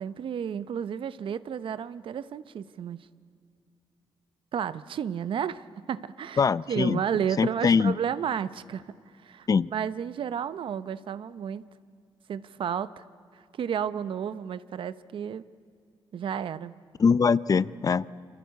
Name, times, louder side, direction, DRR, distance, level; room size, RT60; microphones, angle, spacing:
voice 1, 0.0-3.0 4.5-6.4 6.7-8.8 9.2-11.7 12.3-13.0 13.6-15.4 16.1-16.7, right 8 dB, 65° right, 15 dB, 0.8 m, -32 dB
voice 2, 6.4-7.0 7.4-7.9 9.5-9.7 17.0-18.0, left 5 dB, 40° left, 18 dB, 0.6 m, -22 dB
29.0 x 24.0 x 8.3 m, 2.3 s
cardioid pair, 90°, 9 cm